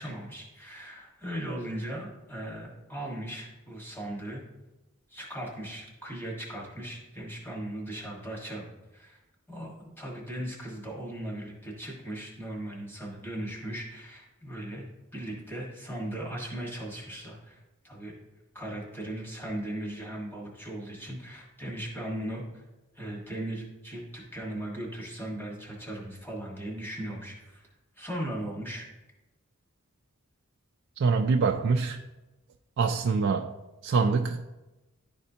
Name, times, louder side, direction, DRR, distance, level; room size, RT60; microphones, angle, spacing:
voice 1, 0.0-4.4 5.1-8.7 8.9-9.2 9.5-14.9 15.1-18.1 18.5-22.6 22.9-27.7 27.9-28.9, right 1 dB, 10° left, -2 dB, 1.4 m, -38 dB
voice 2, 31.0-32.0 32.8-33.6 33.8-34.5, right 4 dB, 55° right, 3 dB, 0.3 m, -25 dB
11.0 x 4.2 x 2.7 m, 1.1 s
head